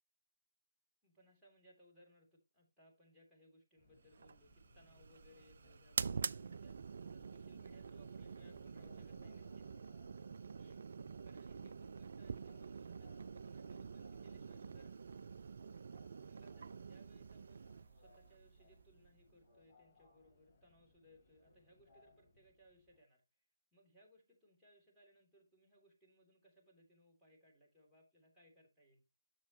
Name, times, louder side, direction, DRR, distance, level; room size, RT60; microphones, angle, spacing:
voice 1, 1.0-9.6 10.6-15.2 16.2-23.2 23.7-29.0, equal, ahead, -7 dB, 3.0 m, -67 dB
Subway metro underground, 3.8-23.0, left 2 dB, 35° left, 3.7 m, -69 dB
sound 1, 4.1-19.4, right 5 dB, 55° right, 0.3 m, -47 dB
10.5 x 6.9 x 2.9 m, 0.24 s
figure-of-eight pair, 140°, 0 cm